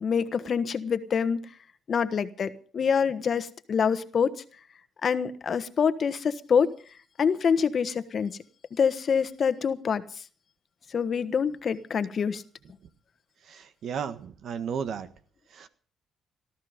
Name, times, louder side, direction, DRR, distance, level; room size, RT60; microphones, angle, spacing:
voice 1, 0.0-1.4 1.9-4.3 5.0-6.7 7.2-8.4 8.8-10.0 10.9-12.4, left 6 dB, 50° left, 1.3 m, -26 dB
voice 2, 13.5-15.1 15.5-15.7, right 7 dB, 65° right, 1.6 m, -34 dB
19.5 x 14.0 x 5.2 m
cardioid pair, 90°, 0 cm